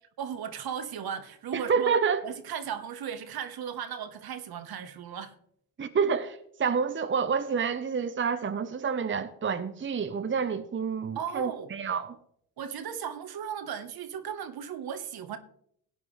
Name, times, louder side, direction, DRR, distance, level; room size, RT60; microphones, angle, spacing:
voice 1, 0.2-5.4 11.1-11.7 12.6-15.4, right 8 dB, 50° right, 1.4 m, -36 dB
voice 2, 1.5-2.2 5.8-12.2, right 6 dB, 25° right, 1.0 m, -28 dB
17.5 x 9.1 x 3.4 m
hypercardioid pair, 50°, 45 cm